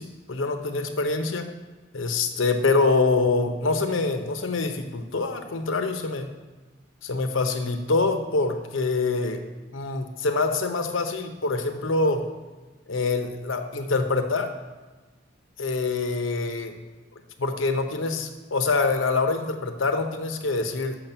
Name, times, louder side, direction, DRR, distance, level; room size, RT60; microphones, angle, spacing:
voice 1, 0.0-1.5 1.9-6.3 7.0-9.4 9.7-12.2 12.9-14.5 15.6-16.7 17.4-21.0, left 3 dB, 85° left, 7 dB, 0.8 m, -25 dB
6.4 x 5.9 x 6.7 m, 1.2 s
head